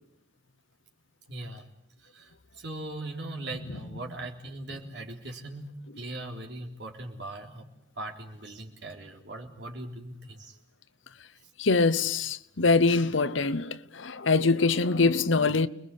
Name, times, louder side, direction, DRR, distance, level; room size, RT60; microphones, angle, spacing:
voice 1, 1.3-1.6 2.0-5.7 6.0-7.7 8.0-10.6, right 2 dB, 60° right, 3.8 m, -40 dB
voice 2, 11.6-15.7, left 3 dB, 80° left, 0.9 m, -24 dB
30.0 x 21.0 x 8.5 m
head